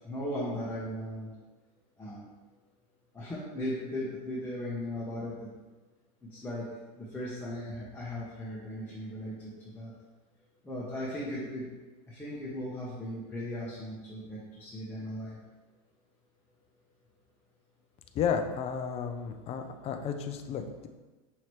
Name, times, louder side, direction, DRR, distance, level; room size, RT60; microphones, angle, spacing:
voice 1, 0.0-1.3 2.0-2.3 3.1-5.3 6.2-6.7 6.9-9.9 10.6-11.7 12.1-15.4, left 1 dB, 10° left, -7 dB, 0.9 m, -37 dB
voice 2, 18.1-20.9, left 7 dB, 35° left, 6 dB, 0.4 m, -32 dB
5.8 x 2.9 x 3.2 m, 1.3 s
supercardioid pair, 125°, 19 cm